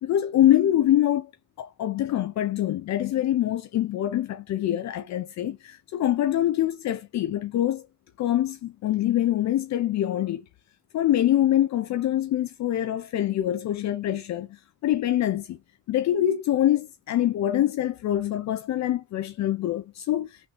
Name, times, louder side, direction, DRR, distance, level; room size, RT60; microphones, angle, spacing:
voice 1, 0.0-1.3 1.6-7.9 8.2-10.4 10.9-15.6 15.9-20.5, left 12 dB, 65° left, 0.5 m, -24 dB
3.6 x 3.2 x 2.9 m
cardioid pair, 90°, 30 cm